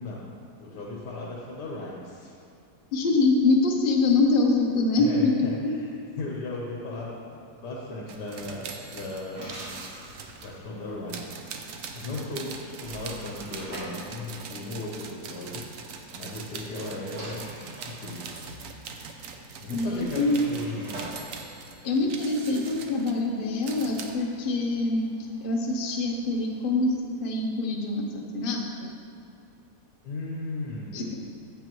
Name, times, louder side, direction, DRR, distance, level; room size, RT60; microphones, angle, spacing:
voice 1, 0.0-2.3 5.0-9.4 10.4-17.4 17.8-18.4 19.6-21.0 30.0-31.1, left 2 dB, 80° left, -4 dB, 1.6 m, -37 dB
voice 2, 2.9-5.8 19.7-20.5 21.8-25.1 25.4-28.9 30.9-31.1, left 3 dB, 40° left, 0 dB, 0.8 m, -25 dB
sound 1, 8.1-10.5 11.1-24.1, right 5 dB, 65° right, 0.9 m, -42 dB
sound 2, 8.3-15.3 16.3-26.8, right 1 dB, 80° right, 2.4 m, -46 dB
9.1 x 7.8 x 3.0 m, 2.5 s
omnidirectional pair, 1.8 m